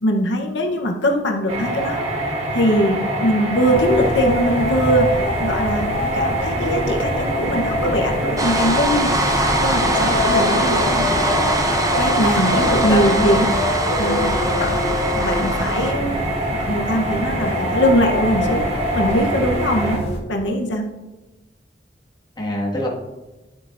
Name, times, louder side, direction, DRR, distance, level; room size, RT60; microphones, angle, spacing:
voice 1, 0.0-2.0 2.5-9.1 9.6-11.2 11.9-13.5 14.0-14.4 15.2-16.2 16.5-18.6 18.9-20.0 20.3-20.8, equal, 85° left, 2 dB, 0.9 m, -21 dB
sound 1, 1.5-20.0, right 1 dB, 40° right, 1.9 m, -25 dB
sound 2, 3.6-20.2, left 1 dB, 65° left, 2.2 m, -25 dB
sound 3, 8.4-15.9, right 1 dB, 20° right, 0.8 m, -22 dB
voice 2, 12.3-13.4 19.7-20.0 22.4-22.9, equal, 25° left, -3 dB, 1.8 m, -25 dB
11.5 x 8.2 x 2.6 m, 1.1 s
head